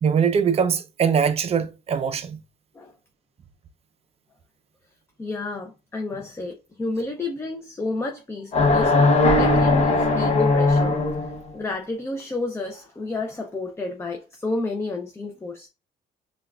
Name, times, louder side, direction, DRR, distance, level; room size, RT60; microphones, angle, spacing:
voice 1, 0.0-2.4, right 7 dB, 35° right, 0.5 m, -22 dB
voice 2, 5.2-15.7, left 2 dB, 15° left, 0.5 m, -31 dB
sound 1, 8.5-11.4, left 2 dB, 40° left, 0.9 m, -19 dB
5.6 x 2.3 x 2.3 m
cardioid pair, 110°, 17 cm